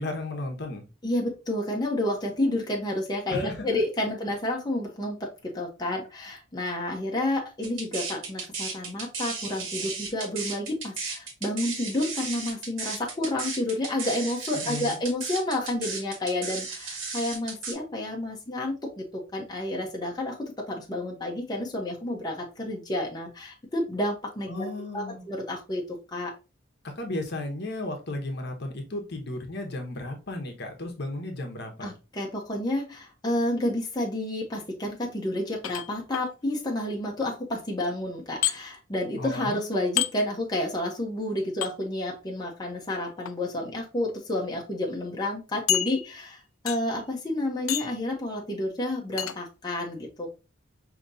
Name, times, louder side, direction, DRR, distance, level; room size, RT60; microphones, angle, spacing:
voice 1, 0.0-0.8 3.3-3.6 14.5-15.0 24.5-25.2 26.8-31.9 39.2-39.6, left 2 dB, 55° left, 4 dB, 0.9 m, -34 dB
voice 2, 1.0-24.7 24.9-26.3 31.8-50.3, left 1 dB, 20° left, -1 dB, 0.9 m, -30 dB
sound 1, 7.6-17.7, right 4 dB, 70° right, 1.4 m, -35 dB
sound 2, 35.6-36.3 38.4-38.6 40.0-40.1 41.6-41.7 43.1-43.3 44.1-44.2 44.5-44.6 45.7-46.3 46.7-47.0 47.7-48.0 49.2-49.4, left 12 dB, 85° left, 0.4 m, -28 dB
5.1 x 2.9 x 2.6 m, 0.30 s
head